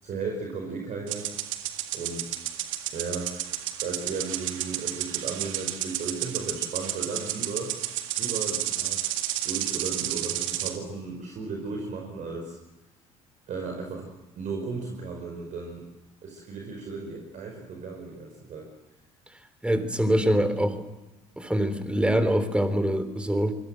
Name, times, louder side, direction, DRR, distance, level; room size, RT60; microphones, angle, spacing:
voice 1, 0.0-1.3 1.9-2.4 2.9-3.3 3.8-7.8 8.2-9.0 9.4-12.6 13.5-14.1 14.3-15.8 16.2-18.7, right 4 dB, 45° right, 2 dB, 5.2 m, -35 dB
sound 1, 1.1-10.8, right 13 dB, 70° right, 1.9 m, -31 dB
voice 2, 19.6-20.8 21.4-23.5, right 1 dB, 5° right, 11 dB, 3.6 m, -24 dB
26.0 x 25.0 x 7.8 m, 1.0 s
figure-of-eight pair, 55°, 17 cm